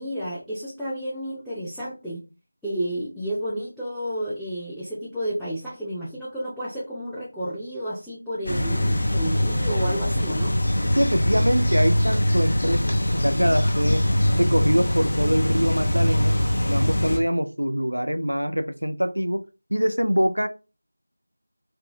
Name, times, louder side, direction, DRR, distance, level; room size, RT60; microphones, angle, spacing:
voice 1, 0.0-2.2 2.6-10.5, equal, ahead, 0.3 m, -31 dB
sound 1, 8.5-17.2, left 1 dB, 50° left, 0.7 m, -22 dB
voice 2, 10.9-14.0 14.3-16.3 16.6-19.4 19.7-20.5, equal, 85° right, 0.4 m, -24 dB
2.7 x 2.6 x 2.5 m
figure-of-eight pair, 170°, 0 cm